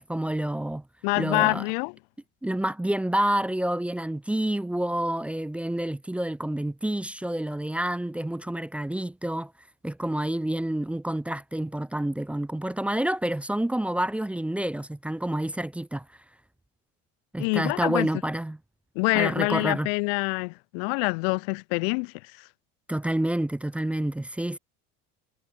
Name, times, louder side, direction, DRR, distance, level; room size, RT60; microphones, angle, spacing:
voice 1, 0.0-0.8 1.2-1.6 2.4-9.5 9.8-16.0 17.3-18.6 19.1-19.9 22.9-24.6, right 1 dB, 5° right, 0.6 m, -28 dB
voice 2, 1.0-1.9 17.4-18.1 18.9-22.1, left 36 dB, 85° left, 0.9 m, -26 dB
cardioid pair, 130°, 29 cm